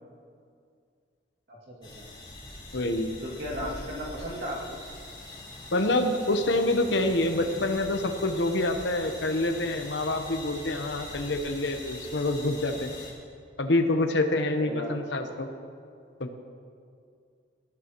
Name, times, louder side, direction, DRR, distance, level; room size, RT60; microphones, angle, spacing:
voice 1, 1.5-2.1 3.2-4.8 14.6-14.9, equal, 65° right, -4 dB, 2.3 m, -36 dB
sound 1, 1.8-13.1, left 2 dB, 25° left, 4.0 m, -43 dB
voice 2, 2.7-3.1 5.7-12.9 13.6-15.5 16.2-16.3, left 2 dB, 75° left, 6 dB, 1.0 m, -26 dB
19.5 x 13.0 x 3.0 m, 2.3 s
head